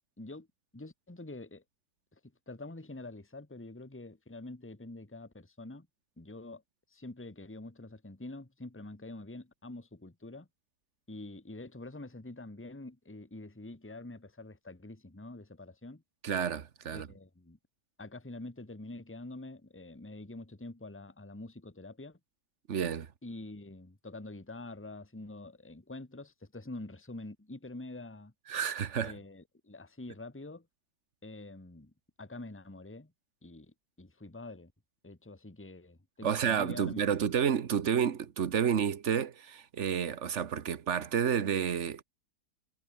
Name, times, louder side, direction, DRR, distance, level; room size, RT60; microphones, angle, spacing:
voice 1, 0.7-1.6 2.5-5.9 6.2-6.6 6.9-10.5 11.1-16.0 16.9-17.6 18.0-22.2 23.2-28.3 29.0-30.7 31.2-33.1 33.4-34.7 35.0-37.0, left 2 dB, 5° left, 1.7 m, -46 dB
voice 2, 16.2-17.1 22.7-23.1 28.5-29.1 36.2-42.0, right 8 dB, 45° right, 1.3 m, -30 dB
omnidirectional pair, 1.9 m